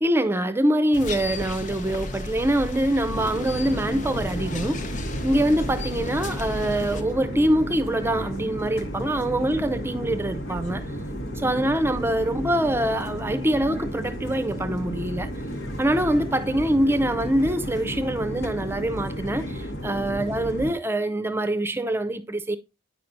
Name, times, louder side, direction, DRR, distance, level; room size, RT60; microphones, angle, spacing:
voice 1, 0.0-5.0 5.2-10.9 11.4-15.3 15.8-22.6, right 1 dB, 10° right, 0.5 m, -24 dB
sound 1, 0.9-7.0, left 1 dB, 40° left, 0.8 m, -34 dB
sound 2, 3.1-20.7, equal, 80° left, 1.2 m, -33 dB
9.3 x 5.8 x 2.5 m
head